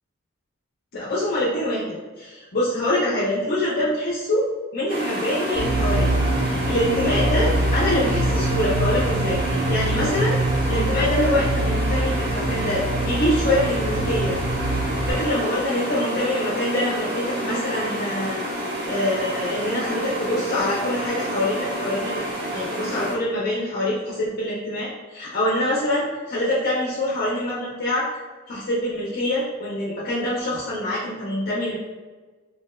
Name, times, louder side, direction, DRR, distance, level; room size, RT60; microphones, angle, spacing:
voice 1, 0.9-6.1 6.5-10.4 10.6-14.4 15.1-22.2 22.5-26.0 26.3-28.1 28.5-31.8, left 1 dB, 45° left, -7 dB, 0.5 m, -25 dB
sound 1, 4.9-23.1, equal, 50° right, 0.9 m, -29 dB
sound 2, 5.5-15.1, right 1 dB, 30° right, 1.1 m, -24 dB
3.3 x 2.7 x 2.2 m, 1.3 s
head